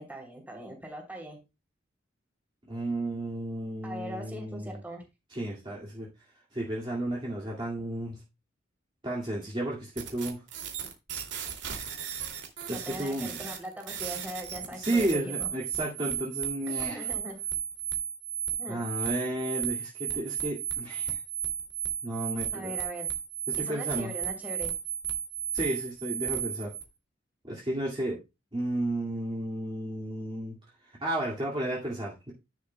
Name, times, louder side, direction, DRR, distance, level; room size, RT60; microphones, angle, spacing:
voice 1, 0.0-1.4 3.8-5.0 12.7-15.5 16.9-17.4 18.6-18.9 22.5-23.1 23.6-24.7, equal, 10° right, 1 dB, 3.1 m, -41 dB
voice 2, 2.6-4.8 5.3-6.1 6.5-8.2 9.0-10.4 12.7-13.4 14.7-17.1 18.7-21.2 22.0-22.8 23.5-24.2 25.5-26.7 27.4-28.2 28.5-30.6 31.0-32.3, right 1 dB, 25° right, -4 dB, 2.1 m, -33 dB
sound 1, 10.0-26.8, right 9 dB, 65° right, 2.5 m, -34 dB
10.0 x 9.7 x 2.2 m, 0.25 s
head